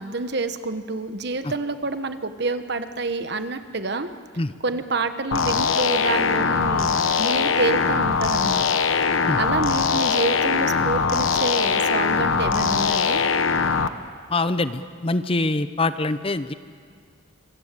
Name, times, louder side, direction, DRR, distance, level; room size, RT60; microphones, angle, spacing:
voice 1, 0.0-4.1 4.6-6.9 7.2-8.8 9.1-13.2, right 3 dB, 55° right, 9 dB, 1.2 m, -28 dB
sound 1, 5.3-13.9, left 5 dB, 80° left, 1.0 m, -21 dB
voice 2, 14.3-16.5, left 2 dB, 25° left, 12 dB, 0.7 m, -24 dB
26.0 x 25.0 x 8.3 m, 2.1 s
head